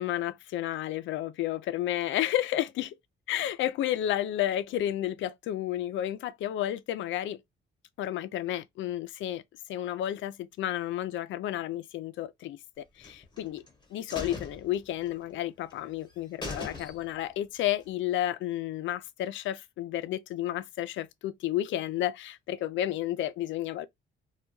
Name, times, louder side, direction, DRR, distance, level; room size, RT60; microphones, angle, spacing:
voice 1, 0.0-3.0 3.3-7.4 8.0-9.4 9.7-13.6 13.9-23.9, left 12 dB, 75° left, 0.4 m, -31 dB
sound 1, 13.0-13.7 14.1-15.4 15.7-15.8 16.1-16.2 16.4-17.3 17.7-17.8, left 3 dB, 25° left, 0.9 m, -40 dB
2.3 x 2.2 x 3.0 m
cardioid pair, 90°, 20 cm